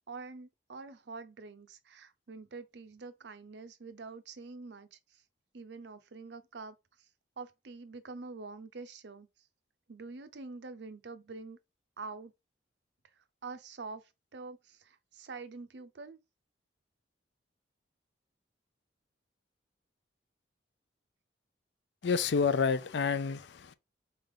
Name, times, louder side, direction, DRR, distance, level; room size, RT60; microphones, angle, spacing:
voice 1, 0.1-5.2 5.5-7.1 7.4-9.3 9.9-11.6 12.0-12.3 13.2-16.2, right 4 dB, 65° right, 0.6 m, -46 dB
voice 2, 22.0-23.7, left 5 dB, 65° left, 0.4 m, -29 dB
3.9 x 3.4 x 3.7 m
head